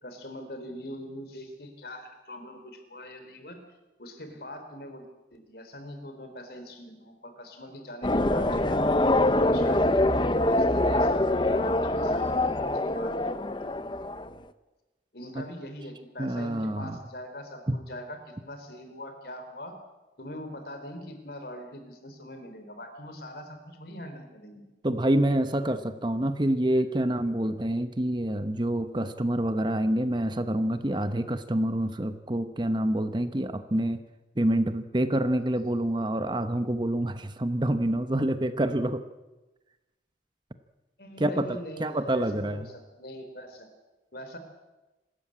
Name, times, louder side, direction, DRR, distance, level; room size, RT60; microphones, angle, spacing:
voice 1, 0.0-3.6 4.0-8.8 9.3-13.6 15.1-19.8 20.2-24.6 41.0-43.7 44.1-44.4, equal, 60° left, 7 dB, 3.8 m, -42 dB
sound 1, 8.0-14.3, left 1 dB, 25° left, 0.7 m, -24 dB
voice 2, 16.2-17.0 17.7-17.8 24.8-34.0 34.4-39.0 41.2-42.7, right 1 dB, 25° right, 10 dB, 0.9 m, -27 dB
26.5 x 13.0 x 8.7 m, 1.1 s
head